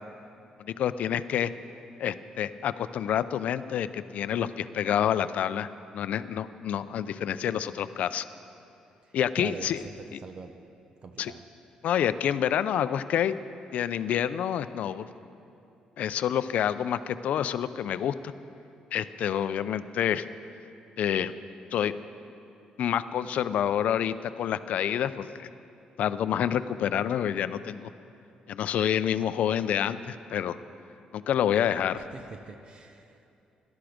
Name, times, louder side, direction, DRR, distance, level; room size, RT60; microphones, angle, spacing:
voice 1, 0.6-1.5 2.0-8.2 9.1-9.8 11.2-11.3 11.8-13.4 13.7-15.1 16.0-18.3 18.9-20.3 21.0-21.3 21.7-21.9 22.8-25.5 26.0-27.9 28.5-30.6 31.1-32.0, left 9 dB, 70° left, 13 dB, 0.5 m, -28 dB
voice 2, 9.0-10.5 11.0-11.4 31.9-33.2, right 4 dB, 40° right, 6 dB, 0.7 m, -44 dB
17.5 x 12.0 x 5.1 m, 2.7 s
cardioid pair, 115°, 2 cm